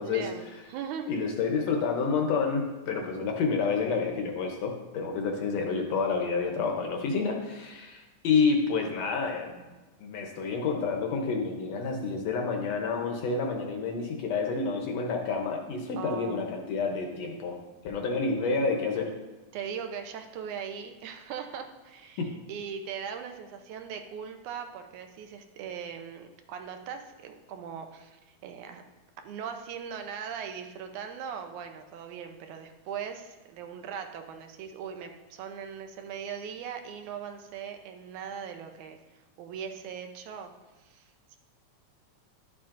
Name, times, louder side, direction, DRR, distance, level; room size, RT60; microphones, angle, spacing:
voice 1, 0.0-1.1 16.0-16.4 19.5-28.8 29.2-40.5 40.8-41.1, right 7 dB, 80° right, 6 dB, 2.1 m, -40 dB
voice 2, 1.1-9.7 10.0-17.6 17.8-19.1 22.2-22.3, left 4 dB, 70° left, 3 dB, 1.8 m, -29 dB
11.5 x 7.2 x 2.5 m, 1.2 s
omnidirectional pair, 3.5 m